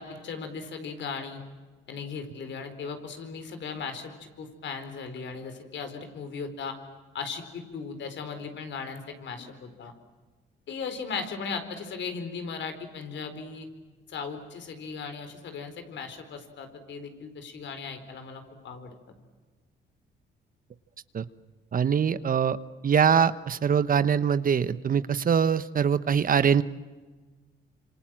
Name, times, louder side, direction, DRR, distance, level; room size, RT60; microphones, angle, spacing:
voice 1, 0.0-1.4 1.9-6.8 7.1-9.9 10.7-13.7 14.1-18.9 21.9-22.0, left 5 dB, 65° left, 8 dB, 4.4 m, -37 dB
voice 2, 21.7-22.6 22.8-26.6, right 7 dB, 45° right, 14 dB, 1.1 m, -23 dB
26.5 x 26.5 x 7.6 m, 1.3 s
cardioid pair, 90°, 20 cm